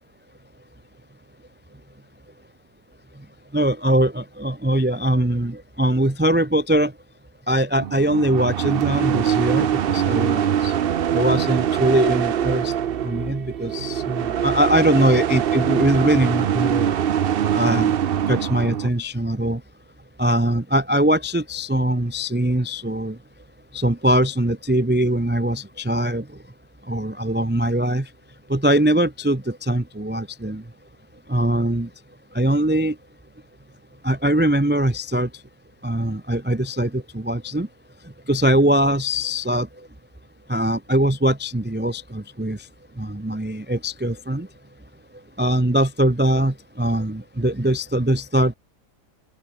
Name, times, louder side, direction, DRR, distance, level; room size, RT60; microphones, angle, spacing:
voice 1, 3.5-6.9 7.5-10.7 11.1-12.7 13.0-17.0 17.5-17.9 18.3-19.6 20.2-23.1 23.7-26.2 26.9-28.0 28.5-30.6 31.3-31.9 32.3-32.9 34.0-35.3 35.8-37.7 38.3-39.7 40.5-42.6 43.0-44.5 45.4-48.5, right 1 dB, 10° right, 0.9 m, -21 dB
sound 1, 7.8-18.9, right 9 dB, 55° right, 0.6 m, -23 dB
open air
omnidirectional pair, 1.7 m